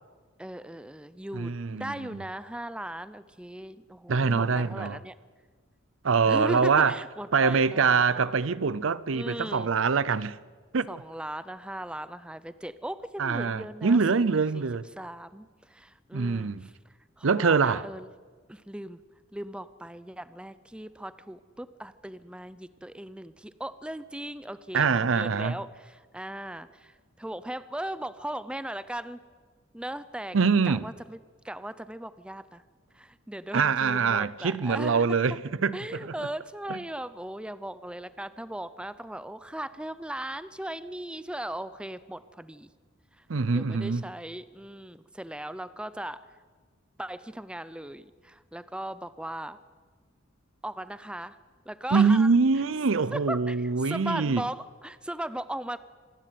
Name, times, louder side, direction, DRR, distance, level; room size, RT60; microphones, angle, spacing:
voice 1, 0.4-5.1 6.2-8.2 9.1-9.7 10.9-14.2 14.5-14.6 15.0-16.7 17.2-18.1 18.5-19.0 19.3-29.2 29.7-30.4 30.6-31.2 31.4-32.6 32.9-35.1 35.7-42.7 43.5-46.2 47.0-49.6 50.6-51.4 51.7-52.3 53.1-55.8, right 1 dB, 5° right, 0.5 m, -38 dB
voice 2, 1.3-2.2 4.1-5.0 6.0-7.0 7.3-10.4 10.7-10.9 13.2-14.9 16.1-16.7 17.2-17.9 24.7-25.6 30.3-30.9 33.5-36.3 36.7-36.8 43.3-44.1 51.9-54.5, right 5 dB, 85° right, 0.6 m, -24 dB
25.5 x 12.0 x 9.3 m
head